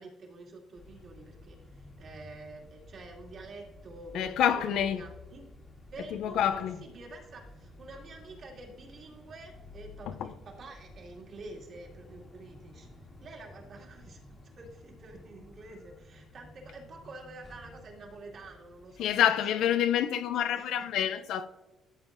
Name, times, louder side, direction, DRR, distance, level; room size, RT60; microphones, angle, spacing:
voice 1, 0.0-5.5 5.9-12.9 13.2-19.8 20.3-20.8, right 2 dB, 50° right, 2.3 m, -48 dB
sound 1, 0.7-19.2, left 1 dB, 30° left, 1.5 m, -53 dB
voice 2, 4.1-5.0 6.1-6.8 10.1-10.3 19.0-21.5, left 10 dB, 75° left, 0.5 m, -27 dB
13.0 x 7.3 x 2.6 m
cardioid pair, 140°, 0 cm